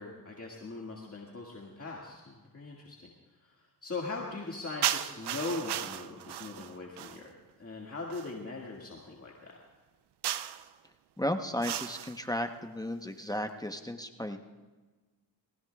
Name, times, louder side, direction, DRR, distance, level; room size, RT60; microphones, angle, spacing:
voice 1, 0.0-3.1 3.4-7.3 7.6-9.6, left 3 dB, 35° left, -2 dB, 1.9 m, -40 dB
sound 1, 4.8-7.3 8.1-8.4 10.2-10.7 11.6-12.2, right 11 dB, 75° right, 0.6 m, -35 dB
voice 2, 11.2-14.4, left 1 dB, 10° left, 6 dB, 0.9 m, -34 dB
22.5 x 15.5 x 2.3 m, 1.3 s
cardioid pair, 65°, 41 cm